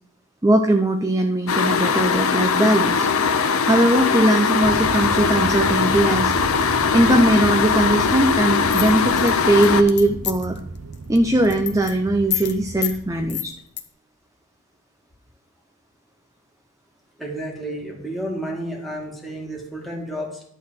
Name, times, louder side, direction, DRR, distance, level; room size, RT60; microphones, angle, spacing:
voice 1, 0.4-3.1 3.6-6.3 6.9-10.6 11.1-13.5, right 1 dB, 15° right, 6 dB, 0.6 m, -19 dB
sound 1, 1.5-9.8, left 5 dB, 80° left, 0.8 m, -20 dB
sound 2, 4.6-13.4, right 2 dB, 90° right, 0.9 m, -34 dB
sound 3, 8.7-10.6 10.9-11.2 11.4-11.9 12.3-12.5 12.8-13.0 13.3-13.8, left 12 dB, 55° left, 0.9 m, -27 dB
voice 2, 17.2-20.4, right 1 dB, ahead, -1 dB, 2.1 m, -31 dB
11.5 x 3.9 x 7.5 m, 0.69 s
head